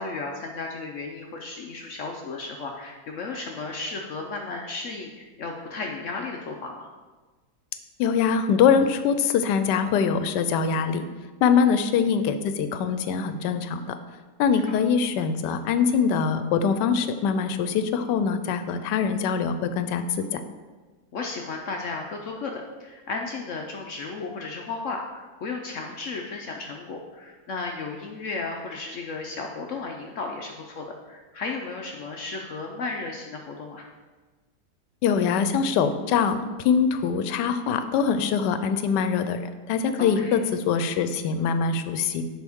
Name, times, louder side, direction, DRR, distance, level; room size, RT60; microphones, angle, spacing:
voice 1, 0.0-6.9 14.5-14.8 21.1-33.9 40.0-40.4, left 3 dB, 65° left, 1 dB, 0.8 m, -34 dB
voice 2, 8.0-11.0 11.4-14.0 14.4-20.4 35.0-42.2, left 6 dB, 85° left, 10 dB, 1.2 m, -23 dB
10.5 x 4.2 x 3.5 m, 1.3 s
omnidirectional pair, 1.8 m